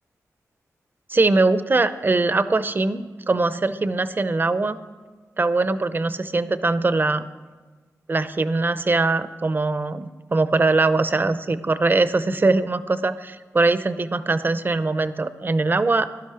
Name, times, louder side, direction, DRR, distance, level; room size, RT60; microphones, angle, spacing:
voice 1, 1.1-4.8 5.4-7.2 8.1-16.1, right 3 dB, 35° right, 13 dB, 0.7 m, -21 dB
18.5 x 12.0 x 5.0 m, 1.4 s
wide cardioid pair, 85°, 6 cm